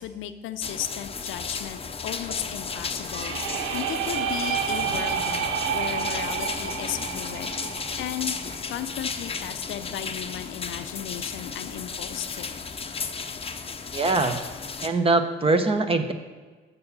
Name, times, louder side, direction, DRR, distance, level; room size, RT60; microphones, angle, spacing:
voice 1, 0.0-3.4 3.7-7.5 8.0-8.4 8.7-12.5, left 11 dB, 80° left, 11 dB, 0.5 m, -35 dB
sound 1, 0.6-14.9, left 5 dB, 30° left, 0.7 m, -34 dB
sound 2, 3.0-8.9, right 8 dB, 90° right, 0.6 m, -30 dB
voice 2, 13.9-14.4 14.8-16.1, right 3 dB, 30° right, 8 dB, 0.9 m, -22 dB
6.9 x 6.6 x 7.1 m, 1.4 s
cardioid pair, 90°, 20 cm